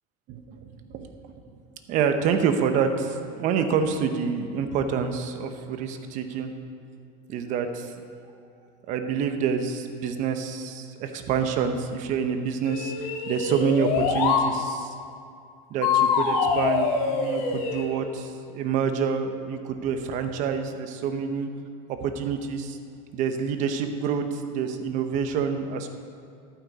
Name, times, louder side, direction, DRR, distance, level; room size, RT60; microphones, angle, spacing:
voice 1, 0.3-1.1 1.9-6.5 7.3-7.9 8.9-14.9 15.7-21.5 21.9-22.8 23.1-25.9, right 6 dB, 45° right, 7 dB, 1.0 m, -27 dB
sound 1, 12.7-14.5 15.8-17.9, left 5 dB, 85° left, 2.0 m, -24 dB
14.0 x 11.5 x 4.2 m, 2.4 s
cardioid pair, 165°, 18 cm